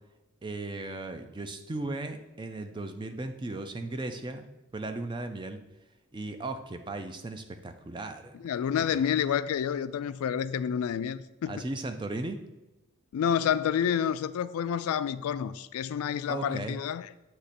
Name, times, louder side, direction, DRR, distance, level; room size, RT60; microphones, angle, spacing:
voice 1, 0.4-4.5 4.7-5.6 6.1-8.5 8.8-8.9 11.5-12.4 16.3-16.8, right 2 dB, 20° right, 0.4 m, -36 dB
voice 2, 8.4-11.7 13.1-17.1, left 8 dB, 80° left, 0.3 m, -29 dB
7.7 x 3.0 x 4.2 m
head